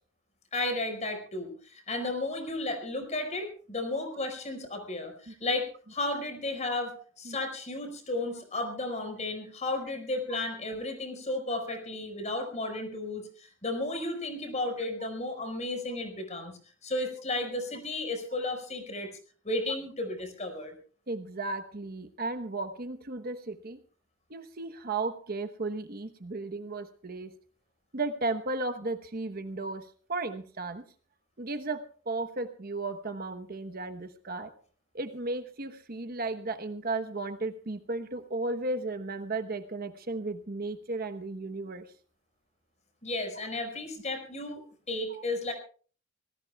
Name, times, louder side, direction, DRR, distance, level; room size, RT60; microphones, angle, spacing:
voice 1, 0.5-19.1 19.4-20.7 43.0-44.6 44.9-45.5, left 2 dB, 35° left, 5 dB, 5.1 m, -33 dB
voice 2, 21.1-23.8 24.3-27.3 27.9-30.8 31.4-34.5 34.9-41.9 45.1-45.2, right 3 dB, 50° right, 8 dB, 1.0 m, -35 dB
26.5 x 18.5 x 2.3 m, 0.42 s
head